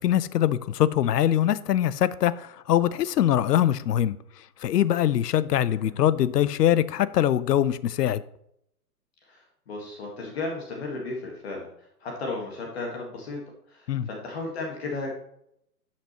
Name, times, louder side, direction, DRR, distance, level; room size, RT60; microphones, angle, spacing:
voice 1, 0.0-4.2 4.6-8.2 13.9-14.1, left 11 dB, 80° left, 0.7 m, -23 dB
voice 2, 5.6-6.0 9.3-11.7 12.0-13.4 13.7-15.1, left 3 dB, 40° left, 1.7 m, -34 dB
11.5 x 5.9 x 3.0 m
hypercardioid pair, 170°, 47 cm